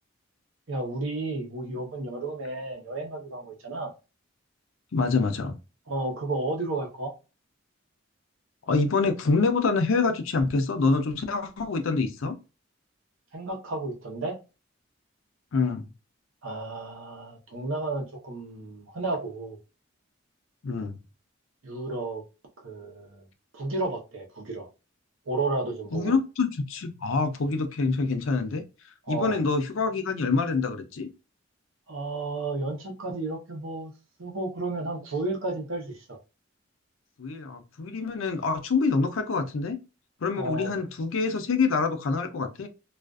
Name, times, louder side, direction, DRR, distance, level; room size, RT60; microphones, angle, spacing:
voice 1, 0.7-3.9 5.9-7.1 13.3-14.4 16.4-19.6 21.6-22.2 22.6-23.3 23.5-24.7 25.3-26.2 29.1-29.4 31.9-33.9 34.2-36.2 40.3-40.8, right 2 dB, 80° right, 0.8 m, -32 dB
voice 2, 4.9-5.6 8.7-12.3 15.5-15.9 20.6-21.0 25.9-28.6 29.1-31.1 37.2-39.8 40.2-42.7, left 4 dB, 80° left, 0.5 m, -26 dB
2.4 x 2.4 x 2.3 m
head